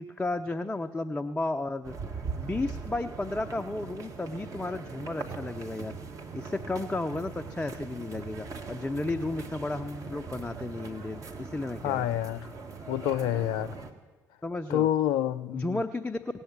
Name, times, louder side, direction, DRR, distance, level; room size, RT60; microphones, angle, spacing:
voice 1, 0.0-1.9 2.4-5.9 6.3-12.1 14.4-14.9 15.5-16.4, left 2 dB, 10° left, 5 dB, 0.6 m, -33 dB
sound 1, 1.8-13.9, right 4 dB, 40° right, 1.6 m, -40 dB
voice 2, 11.8-12.5 12.9-13.7 14.7-15.8, left 11 dB, 60° left, 16 dB, 0.4 m, -28 dB
17.5 x 7.8 x 8.7 m, 1.3 s
figure-of-eight pair, 50°, 9 cm